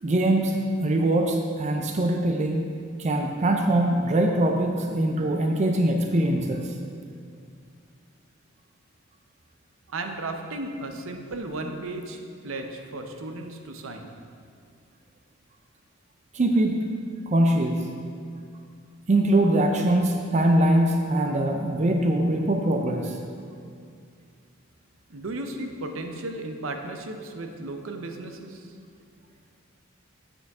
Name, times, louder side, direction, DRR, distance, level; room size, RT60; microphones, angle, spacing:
voice 1, 0.0-2.7 3.0-6.7 16.3-16.9 17.3-17.8 19.1-23.2, right 1 dB, 35° right, 3 dB, 0.5 m, -22 dB
voice 2, 9.9-12.2 12.4-14.1 25.1-28.7, right 2 dB, 70° right, 5 dB, 0.7 m, -35 dB
8.4 x 6.8 x 3.5 m, 2.2 s
head